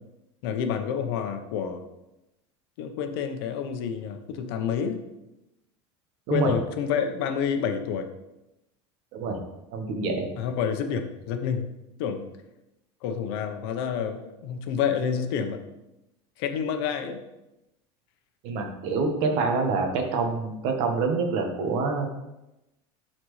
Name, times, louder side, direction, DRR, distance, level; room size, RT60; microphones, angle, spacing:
voice 1, 0.4-1.8 2.8-5.0 6.3-8.0 10.4-11.7 12.0-12.3 13.0-15.6 16.4-17.2, left 7 dB, 70° left, 6 dB, 0.9 m, -28 dB
voice 2, 9.7-10.3 18.4-22.1, right 4 dB, 50° right, 4 dB, 1.2 m, -26 dB
11.0 x 4.3 x 3.2 m, 0.92 s
supercardioid pair, 160°, 13 cm